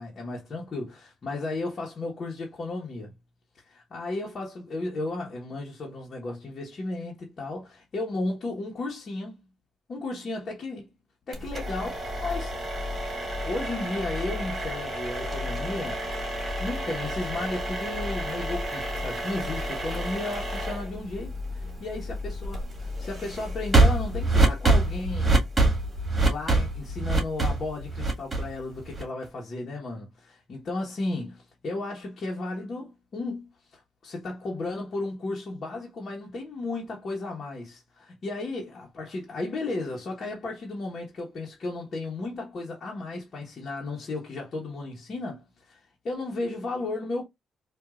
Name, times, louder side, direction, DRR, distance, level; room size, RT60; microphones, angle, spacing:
voice 1, 0.0-3.1 3.7-9.3 9.9-10.9 11.3-12.8 13.4-16.1 16.4-25.4 26.2-45.8 46.0-47.2, left 2 dB, 45° left, 1.3 m, -34 dB
sound 1, 11.3-29.2, right 2 dB, 30° right, 1.8 m, -27 dB
4.4 x 2.6 x 2.5 m
cardioid pair, 90°, 0 cm